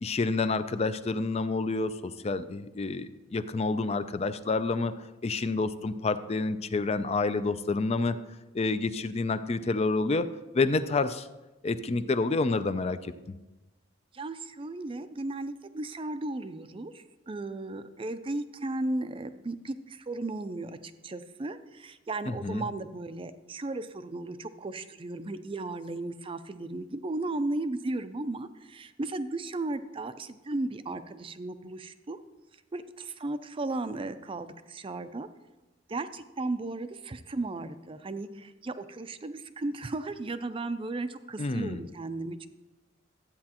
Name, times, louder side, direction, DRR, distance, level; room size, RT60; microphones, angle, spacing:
voice 1, 0.0-4.9 5.2-8.2 8.5-10.3 10.5-11.3 11.6-13.3 22.3-22.6 41.4-41.8, left 3 dB, 35° left, 12 dB, 0.4 m, -28 dB
voice 2, 14.1-20.8 21.0-32.2 32.7-35.3 35.9-42.5, right 2 dB, 30° right, 11 dB, 0.5 m, -35 dB
12.5 x 8.6 x 2.9 m, 1.1 s
head